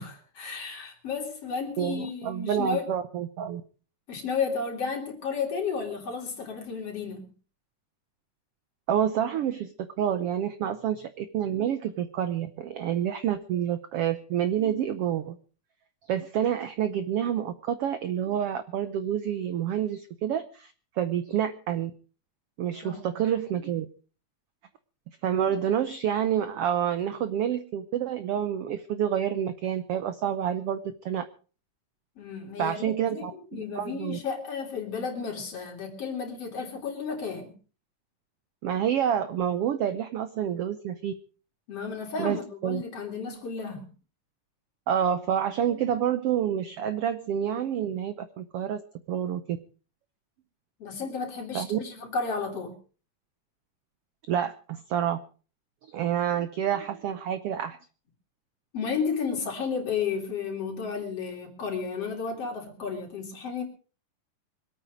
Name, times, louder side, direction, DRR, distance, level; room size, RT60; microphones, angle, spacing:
voice 1, 0.0-2.9 4.1-7.3 22.8-23.0 32.2-37.6 41.7-43.9 50.8-52.7 58.7-63.6, left 5 dB, 45° left, 2 dB, 4.1 m, -33 dB
voice 2, 1.8-3.6 8.9-15.4 16.1-21.9 22.6-23.9 25.2-30.8 31.0-31.2 32.6-34.2 38.6-41.1 42.2-42.4 42.6-42.8 44.9-48.8 49.1-49.6 51.5-51.8 54.3-55.2 55.9-57.8, right 9 dB, 80° right, 11 dB, 1.3 m, -28 dB
24.5 x 8.9 x 5.0 m, 0.38 s
omnidirectional pair, 3.8 m